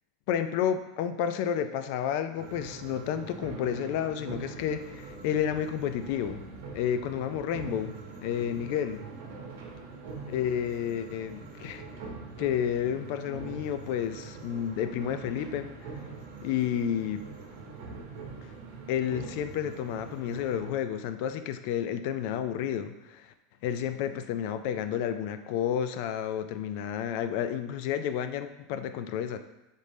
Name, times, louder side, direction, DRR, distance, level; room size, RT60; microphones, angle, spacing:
voice 1, 0.3-6.4 6.7-7.9 8.2-9.0 10.3-11.8 12.4-15.7 16.4-17.2 18.4-18.5 18.9-23.3 23.6-29.4, left 9 dB, 60° left, 10 dB, 0.3 m, -31 dB
sound 1, 2.4-20.7, right 4 dB, 75° right, 0.9 m, -43 dB
4.0 x 3.1 x 3.4 m, 1.0 s
supercardioid pair, 145°, 0 cm